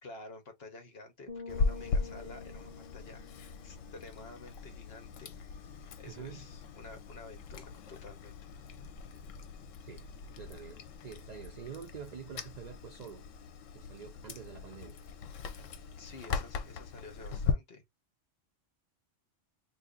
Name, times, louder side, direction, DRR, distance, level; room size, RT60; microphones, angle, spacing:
voice 1, 0.0-3.3 3.6-5.3 5.7-8.3 16.0-17.8, left 3 dB, 55° left, 1.2 m, -50 dB
sound 1, 1.3-5.0, left 5 dB, 25° right, 1.1 m, -48 dB
Chewing mastication, 1.5-17.5, left 5 dB, 85° left, 1.0 m, -39 dB
voice 2, 6.0-6.5 9.8-10.1 10.4-13.2 13.7-15.0, right 7 dB, 65° right, 0.4 m, -46 dB
2.7 x 2.6 x 3.6 m
omnidirectional pair, 1.3 m